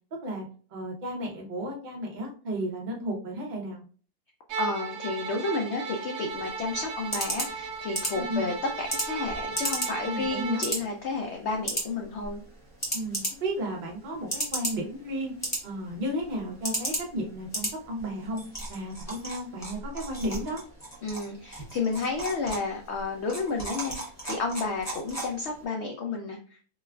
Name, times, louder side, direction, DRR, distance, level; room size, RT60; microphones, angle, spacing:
voice 1, 0.7-3.8 8.1-8.5 10.0-10.6 12.9-15.3 15.6-18.4 18.7-20.6, equal, 40° right, 0 dB, 0.7 m, -33 dB
Bowed string instrument, 4.5-10.7, right 5 dB, 75° right, 1.2 m, -36 dB
voice 2, 4.6-12.4 21.0-24.0 24.2-26.6, left 3 dB, 80° left, 2 dB, 0.6 m, -31 dB
sound 1, 6.3-25.6, right 1 dB, 20° left, 0.4 m, -36 dB
4.1 x 2.3 x 2.2 m, 0.41 s
omnidirectional pair, 1.7 m